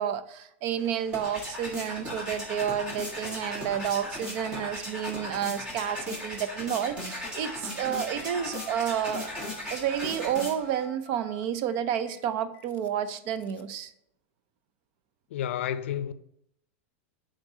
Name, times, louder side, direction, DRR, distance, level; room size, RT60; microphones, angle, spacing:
voice 1, 0.0-9.3 9.7-13.9, right 9 dB, 40° right, 0.5 m, -30 dB
sound 1, 0.8-10.9, left 1 dB, 15° right, 1.6 m, -37 dB
Speech synthesizer, 2.9-6.2, left 3 dB, 5° left, 2.0 m, -56 dB
Telephone, 6.9-13.8, left 4 dB, 25° left, 0.4 m, -50 dB
voice 2, 15.3-16.1, left 10 dB, 80° left, 0.5 m, -30 dB
11.0 x 3.8 x 2.7 m
supercardioid pair, 165°, 7 cm